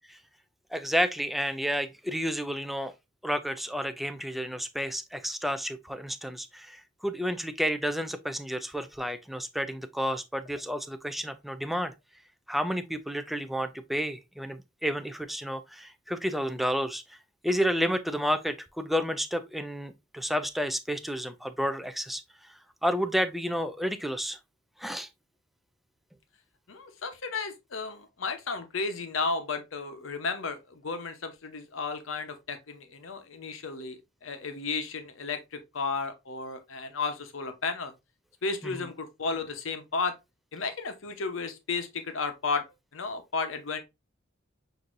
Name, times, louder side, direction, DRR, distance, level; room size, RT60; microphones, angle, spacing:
voice 1, 0.7-2.9 3.2-11.9 12.5-17.2 17.4-22.5 22.8-24.4 24.8-25.1 38.6-38.8, equal, ahead, 0.3 m, -31 dB
voice 2, 26.7-37.9 38.4-40.1 40.5-42.6 42.9-43.8, left 4 dB, 75° left, 0.7 m, -33 dB
6.1 x 2.7 x 2.5 m
head